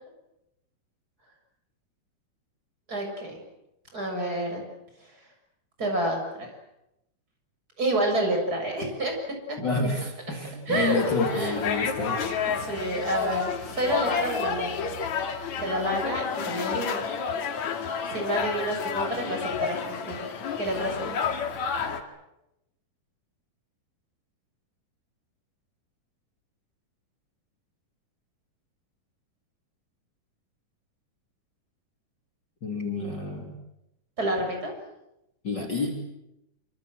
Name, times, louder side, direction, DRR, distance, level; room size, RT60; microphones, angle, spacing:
voice 1, 2.9-3.4 3.9-4.6 5.8-6.5 7.8-9.1 10.7-11.0 11.3-11.6 12.6-14.9 15.6-17.0 18.1-20.3 20.6-21.1 34.2-34.7, right 1 dB, 25° right, 3 dB, 7.4 m, -29 dB
voice 2, 9.6-12.2 32.6-33.5 35.4-36.0, left 3 dB, 35° left, 2 dB, 3.3 m, -29 dB
sound 1, 10.7-22.0, left 6 dB, 60° left, 3.3 m, -30 dB
26.5 x 25.5 x 7.9 m, 0.88 s
omnidirectional pair, 3.8 m